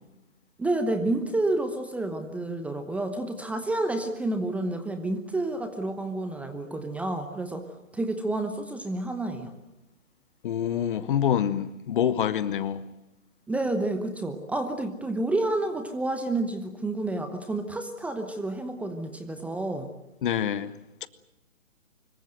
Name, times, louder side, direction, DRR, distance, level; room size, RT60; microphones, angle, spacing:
voice 1, 0.6-7.7 7.9-9.5 13.5-19.9, right 2 dB, 5° right, 0.9 m, -29 dB
voice 2, 10.4-12.9 20.2-20.7 21.0-21.1, left 9 dB, 40° left, 1.2 m, -26 dB
25.5 x 22.5 x 7.9 m
figure-of-eight pair, 130°, 41 cm